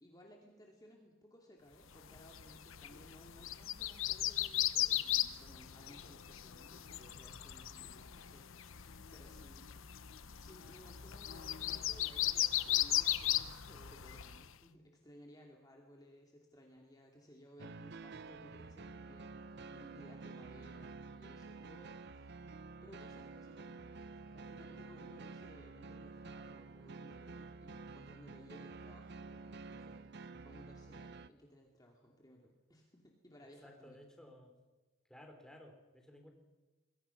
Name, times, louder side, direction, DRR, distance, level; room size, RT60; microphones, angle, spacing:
voice 1, 0.0-9.7 10.1-23.8 24.3-30.1 30.4-34.0, equal, 20° left, 0 dB, 2.6 m, -60 dB
sound 1, 2.0-14.5, left 13 dB, 75° left, 0.9 m, -37 dB
sound 2, 17.6-31.3, right 3 dB, 55° right, 0.7 m, -50 dB
voice 2, 33.6-34.5 35.1-36.3, left 1 dB, 5° left, 3 dB, 3.4 m, -56 dB
27.5 x 22.0 x 6.0 m, 1.2 s
head